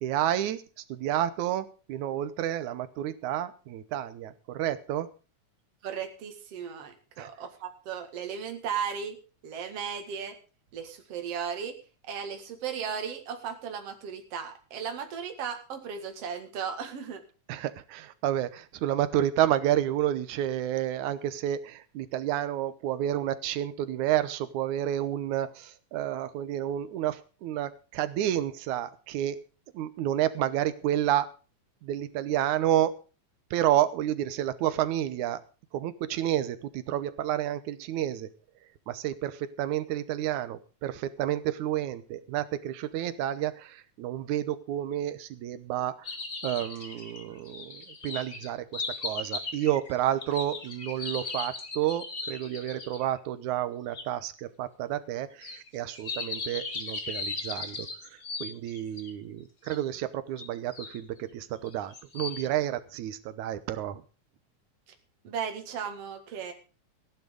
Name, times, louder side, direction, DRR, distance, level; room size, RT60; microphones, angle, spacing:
voice 1, 0.0-0.6 0.9-5.1 7.2-7.3 17.5-29.4 29.7-31.3 31.8-32.9 33.5-35.4 35.7-38.3 38.9-45.9 46.4-57.9 58.4-64.0, right 12 dB, 80° right, 13 dB, 2.3 m, -30 dB
voice 2, 5.8-9.2 9.4-10.4 10.7-11.8 12.0-17.2 65.2-66.5, right 7 dB, 55° right, 5 dB, 2.8 m, -36 dB
sound 1, 46.0-53.0 53.9-54.0 55.4-59.1 59.6-59.8 60.4-61.0 61.6-62.5, left 3 dB, 30° left, 1.3 m, -37 dB
15.0 x 10.5 x 5.2 m, 0.34 s
omnidirectional pair, 3.4 m